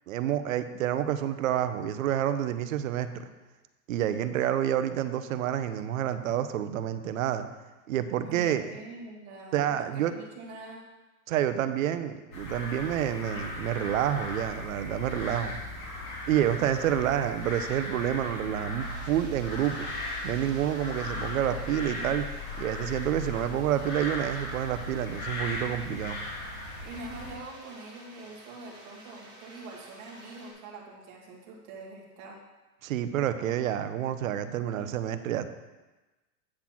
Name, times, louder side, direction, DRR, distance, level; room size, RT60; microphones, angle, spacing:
voice 1, 0.1-3.1 3.9-7.5 7.9-8.7 9.5-10.1 11.3-15.6 16.3-19.9 20.2-22.3 22.6-26.2 32.8-35.5, right 11 dB, 60° right, 11 dB, 0.6 m, -28 dB
voice 2, 8.2-10.8 26.8-32.4, right 2 dB, 30° right, -2 dB, 1.4 m, -44 dB
sound 1, 12.3-27.3, left 1 dB, 65° left, 2.4 m, -37 dB
sound 2, 18.8-30.5, right 1 dB, 10° right, 1.0 m, -51 dB
8.7 x 4.0 x 5.9 m, 1.1 s
supercardioid pair, 170°, 48 cm